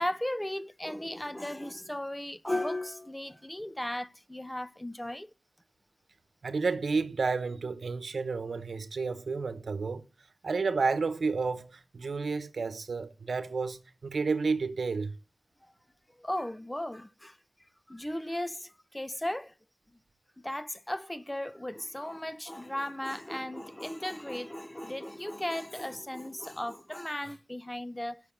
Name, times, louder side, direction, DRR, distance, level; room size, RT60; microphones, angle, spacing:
voice 1, 0.0-5.3 16.2-17.4 17.9-19.5 20.4-28.2, left 1 dB, 15° left, 0.8 m, -36 dB
voice 2, 6.4-10.0 10.4-15.1, right 4 dB, 90° right, 1.0 m, -31 dB
9.9 x 6.4 x 8.6 m
wide cardioid pair, 50°, 0 cm